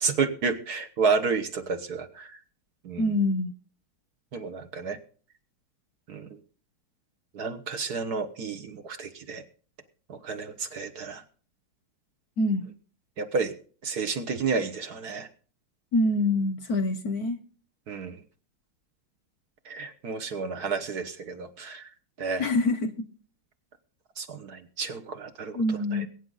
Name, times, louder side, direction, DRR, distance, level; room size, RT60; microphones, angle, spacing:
voice 1, 0.0-2.4 2.8-3.0 4.3-5.0 6.1-6.3 7.3-9.4 10.1-11.2 13.2-13.6 13.8-15.3 17.9-18.2 19.7-21.9 22.2-22.4 24.2-25.6 25.9-26.0, right 5 dB, 55° right, 1.5 m, -31 dB
voice 2, 3.0-3.5 12.4-12.7 15.9-17.4 22.4-23.1 25.5-26.1, left 2 dB, 60° left, 1.1 m, -25 dB
22.0 x 9.2 x 3.9 m
omnidirectional pair, 2.3 m